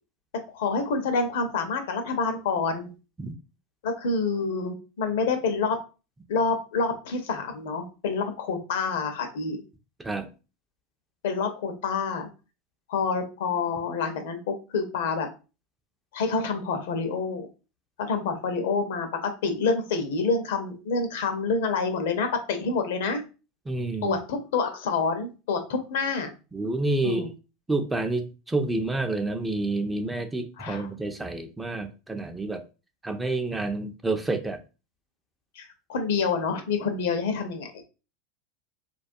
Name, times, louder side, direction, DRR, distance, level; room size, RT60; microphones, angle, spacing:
voice 1, 0.5-2.9 3.8-5.8 6.3-9.6 11.2-12.3 12.9-15.3 16.1-17.5 18.0-23.2 24.0-26.3 27.0-27.3 30.6-30.9 35.6-37.7, left 4 dB, 65° left, 0.5 m, -27 dB
voice 2, 23.7-24.2 26.5-27.3 27.7-32.6 33.0-34.6, right 2 dB, 10° right, 0.3 m, -29 dB
2.2 x 2.2 x 2.5 m
hypercardioid pair, 85°, 0 cm